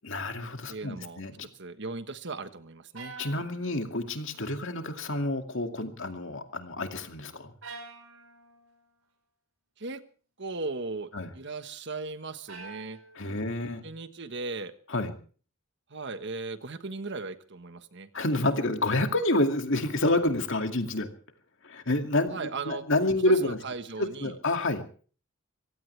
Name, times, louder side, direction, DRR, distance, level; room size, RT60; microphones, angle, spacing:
voice 1, 0.0-1.5 3.2-7.5 11.1-11.3 13.2-13.8 14.9-15.1 18.1-21.1 21.6-23.6 24.0-24.8, left 2 dB, 60° left, 6 dB, 2.3 m, -28 dB
voice 2, 0.7-1.2 1.5-3.2 9.8-10.0 10.4-13.4 13.8-14.7 15.9-18.1 22.3-22.8 23.4-24.4, right 3 dB, 55° right, 11 dB, 1.4 m, -37 dB
sound 1, 2.9-4.6 4.9-5.5 7.6-8.8 12.5-13.6, right 4 dB, 75° right, 5.9 m, -47 dB
25.0 x 16.5 x 3.4 m, 0.41 s
head